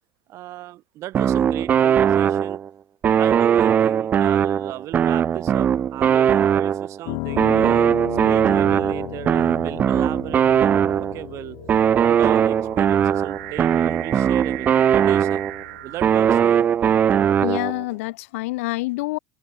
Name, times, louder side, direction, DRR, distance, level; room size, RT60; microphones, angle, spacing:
voice 1, 0.3-2.6 3.2-7.9 8.2-11.6 12.1-15.4 15.8-16.7, right 16 dB, 40° right, 2.6 m, -35 dB
sound 1, 1.1-2.7 3.0-7.0 7.4-11.3 11.7-15.6 16.0-17.8, right 8 dB, 20° right, 0.5 m, -19 dB
Piano, 7.0-17.2, left 35 dB, 55° left, 1.3 m, -37 dB
sound 2, 9.0-16.9, right 20 dB, 75° right, 1.0 m, -39 dB
voice 2, 17.4-19.2, left 21 dB, 70° left, 0.9 m, -27 dB
supercardioid pair, 150°, 7 cm